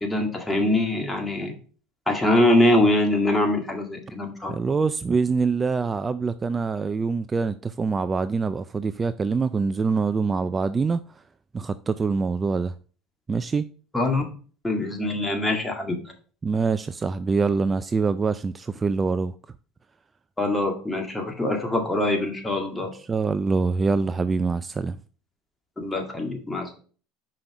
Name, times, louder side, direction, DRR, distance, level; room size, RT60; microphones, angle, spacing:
voice 1, 0.0-1.5 2.1-4.5 13.9-14.2 14.6-16.0 20.4-22.9 25.8-26.7, left 1 dB, 15° left, 2.0 m, -23 dB
voice 2, 4.5-11.0 11.5-12.7 13.3-13.7 16.4-19.3 23.0-25.0, right 4 dB, 25° right, 0.3 m, -24 dB
5.8 x 5.2 x 4.8 m
supercardioid pair, 90°, 0 cm